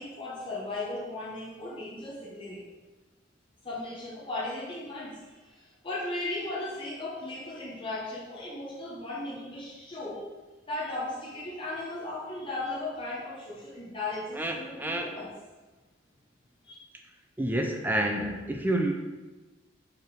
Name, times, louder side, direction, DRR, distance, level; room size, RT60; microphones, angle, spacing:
voice 1, 0.0-2.6 3.6-10.2 10.7-15.3 16.6-16.8, left 2 dB, 25° left, -6 dB, 1.0 m, -36 dB
voice 2, 14.3-15.1 17.4-18.9, right 1 dB, 10° right, 3 dB, 0.5 m, -29 dB
4.8 x 4.4 x 4.7 m, 1.2 s
head